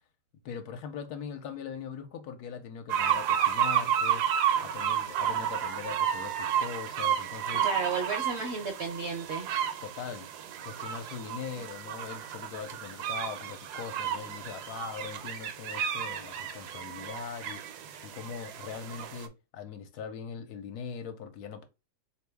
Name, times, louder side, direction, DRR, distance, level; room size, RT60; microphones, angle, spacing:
voice 1, 0.4-4.2 4.6-7.7 9.6-10.3 10.6-21.7, left 6 dB, 75° left, 1.2 m, -41 dB
sound 1, 2.9-19.3, right 9 dB, 75° right, 1.1 m, -32 dB
voice 2, 7.6-9.7, right 4 dB, 60° right, 0.7 m, -33 dB
3.7 x 2.9 x 3.3 m
omnidirectional pair, 1.8 m